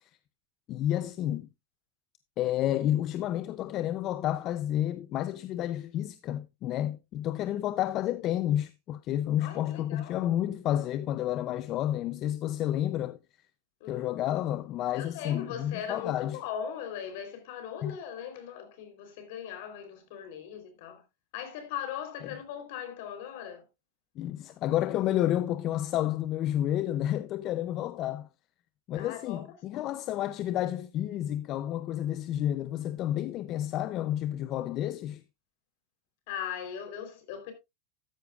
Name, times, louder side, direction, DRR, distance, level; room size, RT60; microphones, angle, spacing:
voice 1, 0.7-1.5 2.4-13.2 13.9-16.4 17.8-17.9 24.2-28.3 28.9-35.2, left 12 dB, 30° left, 0.4 m, -30 dB
voice 2, 9.4-10.3 13.8-14.1 14.9-21.0 21.3-23.7 28.9-29.4 29.7-29.9 36.3-37.5, left 8 dB, 50° left, 3.4 m, -39 dB
13.0 x 9.7 x 2.4 m
supercardioid pair, 170°, 0 cm